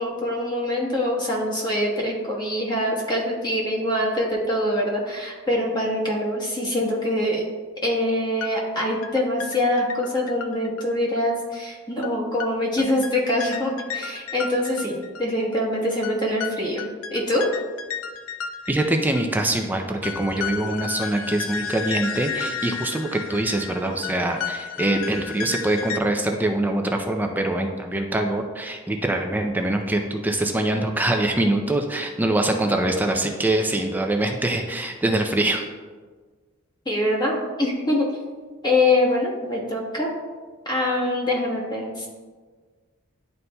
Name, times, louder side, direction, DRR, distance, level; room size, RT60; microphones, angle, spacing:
voice 1, 0.0-7.4 7.8-17.4 36.8-38.1 38.6-40.1 40.6-42.1, left 1 dB, 20° left, -3 dB, 1.1 m, -24 dB
sound 1, 8.4-8.5 8.8-11.2 11.5-11.6 12.0-12.1 12.4-12.5 12.8-15.3 15.5-15.6 16.0-19.3 19.5-19.6 20.0-26.0, left 7 dB, 65° left, 0.4 m, -33 dB
voice 2, 18.7-35.6, right 1 dB, 10° right, 4 dB, 0.4 m, -24 dB
10.5 x 4.0 x 2.2 m, 1.4 s
head